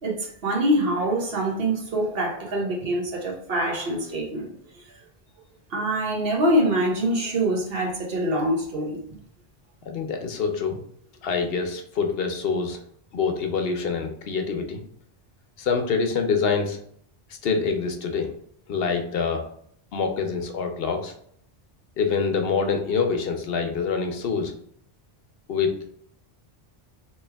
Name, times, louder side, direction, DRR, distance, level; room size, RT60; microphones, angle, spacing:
voice 1, 0.0-4.5 5.7-9.0, right 1 dB, 70° right, 0 dB, 1.2 m, -24 dB
voice 2, 9.9-10.8 11.2-12.8 13.1-14.8 15.6-16.8 17.4-18.3 18.7-19.4 19.9-21.1 22.0-24.5 25.5-25.7, left 5 dB, 70° left, 5 dB, 0.9 m, -25 dB
3.2 x 3.1 x 3.4 m, 0.63 s
omnidirectional pair, 1.0 m